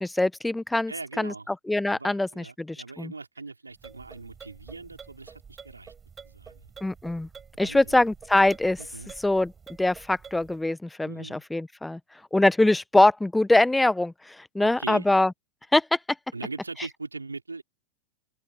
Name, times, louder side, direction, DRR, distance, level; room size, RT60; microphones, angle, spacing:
voice 1, 0.0-3.1 6.8-7.3 7.6-8.8 9.2-9.5 9.8-12.0 12.3-15.3 15.7-16.0, left 2 dB, 5° left, 1.1 m, -23 dB
voice 2, 0.9-1.5 1.9-5.9 6.2-6.7 7.6-7.8 8.8-9.1 11.0-11.4 14.6-15.1 16.3-17.6, right 3 dB, 80° right, 4.6 m, -40 dB
sound 1, 3.7-10.7, right 6 dB, 20° right, 4.7 m, -48 dB
open air
figure-of-eight pair, 90°, 0 cm